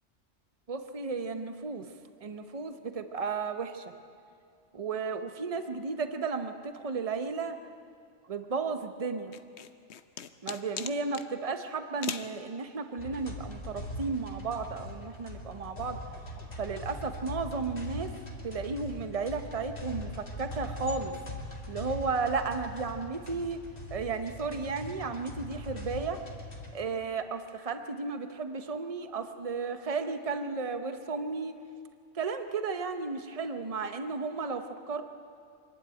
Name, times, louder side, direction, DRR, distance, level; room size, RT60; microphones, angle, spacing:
voice 1, 0.7-1.9 2.2-3.9 4.7-7.6 8.3-9.3 10.4-16.0 16.6-18.1 18.4-21.2 21.7-23.6 23.9-26.2 26.7-31.6 32.1-35.0, right 4 dB, 30° right, 8 dB, 1.0 m, -34 dB
sound 1, 9.3-11.3 12.0-12.3, left 8 dB, 65° left, 1.0 m, -39 dB
sound 2, 13.0-26.7, left 1 dB, 45° left, 2.6 m, -41 dB
25.0 x 12.0 x 9.2 m, 2.3 s
omnidirectional pair, 1.3 m